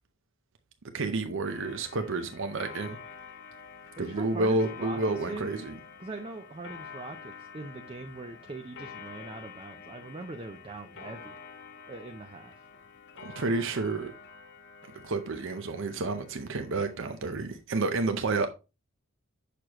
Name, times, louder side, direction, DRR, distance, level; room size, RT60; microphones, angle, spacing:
voice 1, 0.9-3.0 4.0-5.8 13.2-14.1 15.0-18.5, right 3 dB, 65° right, 0.7 m, -30 dB
Clock, 1.4-17.6, left 5 dB, 55° left, 0.7 m, -48 dB
voice 2, 4.0-5.0 5.3-5.5 6.0-11.4 11.9-12.6, right 2 dB, 25° right, 0.5 m, -41 dB
6.8 x 6.2 x 2.9 m
head